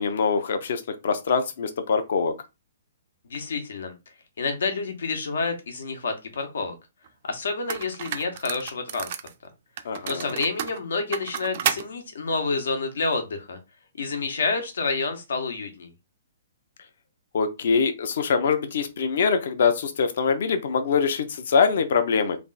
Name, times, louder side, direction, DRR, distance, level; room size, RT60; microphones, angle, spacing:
voice 1, 0.0-2.3 9.8-10.3 17.3-22.4, left 5 dB, 55° left, 0.7 m, -23 dB
voice 2, 3.3-3.9 4.4-6.7 7.3-9.1 10.1-13.6 14.0-15.9, left 4 dB, 85° left, 1.3 m, -28 dB
sound 1, 7.1-7.2 7.7-9.3 9.8-11.9, right 10 dB, 40° right, 0.4 m, -31 dB
3.4 x 2.5 x 4.0 m
hypercardioid pair, 165°, 0 cm